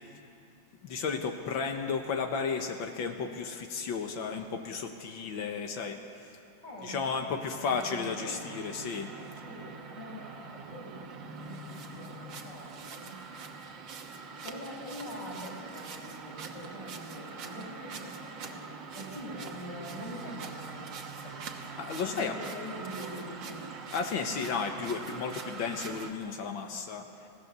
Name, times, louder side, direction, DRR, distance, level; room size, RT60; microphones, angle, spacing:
voice 1, 0.8-6.3 6.8-9.1 21.8-22.4 23.9-27.1, left 5 dB, 80° left, 4 dB, 1.9 m, -33 dB
voice 2, 6.6-7.2 7.5-8.5 9.4-13.2 14.4-18.6 18.9-21.4 22.0-23.6, equal, 65° left, -3 dB, 5.7 m, -44 dB
sound 1, 7.6-26.1, right 4 dB, 70° right, 2.0 m, -43 dB
25.5 x 17.0 x 6.8 m, 2.7 s
omnidirectional pair, 2.1 m